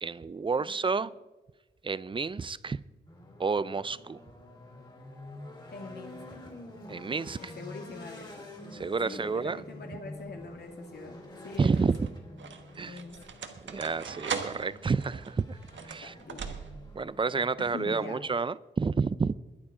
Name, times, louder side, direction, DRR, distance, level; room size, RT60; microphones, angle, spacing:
voice 1, 0.0-1.1 1.8-2.8 3.4-4.2 6.9-7.5 8.7-9.6 11.6-12.1 12.8-13.0 13.6-15.6 15.8-16.1 17.0-19.3, right 4 dB, 25° right, 18 dB, 0.4 m, -30 dB
voice 2, 0.6-1.1 5.7-6.3 7.4-8.5 9.0-11.9 12.9-13.2 16.0-16.6 17.6-18.2, left 3 dB, 60° left, 2 dB, 2.1 m, -44 dB
sound 1, 3.1-18.3, left 1 dB, 25° left, 3.4 m, -48 dB
sound 2, 10.2-10.7 11.5-17.0, right 6 dB, 75° right, 1.4 m, -40 dB
21.5 x 9.8 x 4.9 m, 1.1 s
wide cardioid pair, 130°, 19 cm